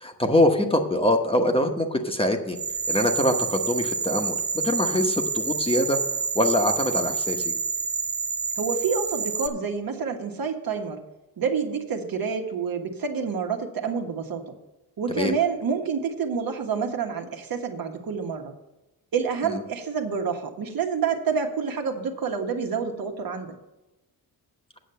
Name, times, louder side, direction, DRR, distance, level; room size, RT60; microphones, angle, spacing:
voice 1, 0.0-2.6 2.9-6.0 6.3-7.5 15.1-15.3 19.5-19.6, left 1 dB, 15° left, 4 dB, 1.0 m, -23 dB
sound 1, 2.6-9.5, right 5 dB, 25° right, 1.0 m, -28 dB
voice 2, 8.6-11.0 11.4-14.6 15.0-18.5 19.1-23.5, right 6 dB, 60° right, 4 dB, 1.4 m, -28 dB
8.5 x 6.9 x 6.8 m, 0.98 s
cardioid pair, 110°, 39 cm